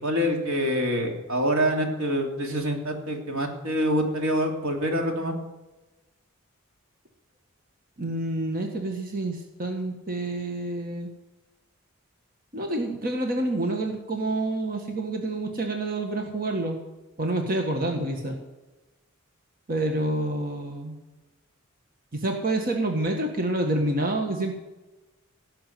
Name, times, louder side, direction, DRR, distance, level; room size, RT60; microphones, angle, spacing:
voice 1, 0.0-5.3, equal, 80° right, 2 dB, 2.9 m, -26 dB
voice 2, 8.0-11.1 12.5-16.8 17.2-18.4 19.7-21.0 22.1-24.5, right 2 dB, 40° right, 3 dB, 1.6 m, -28 dB
17.5 x 6.8 x 9.3 m, 1.1 s
head